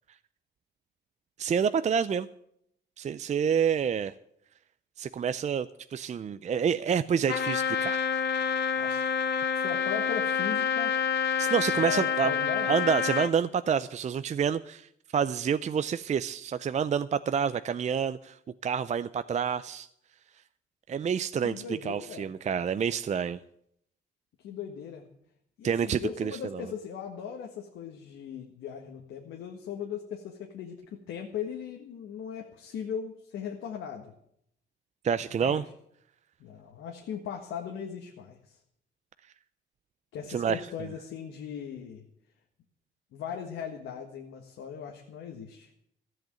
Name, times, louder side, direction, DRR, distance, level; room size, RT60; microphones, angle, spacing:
voice 1, 1.4-2.3 3.0-4.1 5.0-8.0 11.4-12.3 12.7-19.9 20.9-23.4 25.6-26.7 35.0-35.6 40.3-40.6, right 7 dB, 35° right, 13 dB, 0.5 m, -28 dB
Trumpet, 7.3-13.3, left 7 dB, 55° left, 0.9 m, -28 dB
voice 2, 9.5-11.0 11.7-12.8 21.4-22.3 24.4-25.1 25.6-34.1 35.4-35.6 36.4-38.6 40.1-42.0 43.1-45.7, left 7 dB, 85° left, 2 dB, 1.6 m, -38 dB
14.0 x 8.0 x 9.0 m, 0.72 s
cardioid pair, 90°, 20 cm